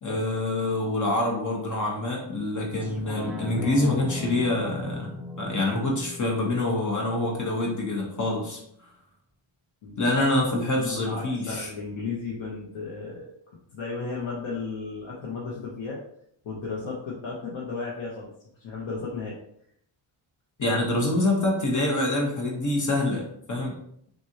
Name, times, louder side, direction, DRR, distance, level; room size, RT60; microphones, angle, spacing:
voice 1, 0.0-5.1 5.4-8.6 10.0-11.7 20.6-23.7, left 2 dB, 40° left, -1 dB, 1.2 m, -26 dB
sound 1, 2.8-7.8 8.3-8.4, left 1 dB, 5° right, 0.5 m, -38 dB
voice 2, 10.7-16.0 16.4-18.3 18.6-19.4, left 4 dB, 80° left, -4 dB, 1.1 m, -34 dB
6.2 x 2.6 x 2.9 m, 0.70 s
wide cardioid pair, 175°, 47 cm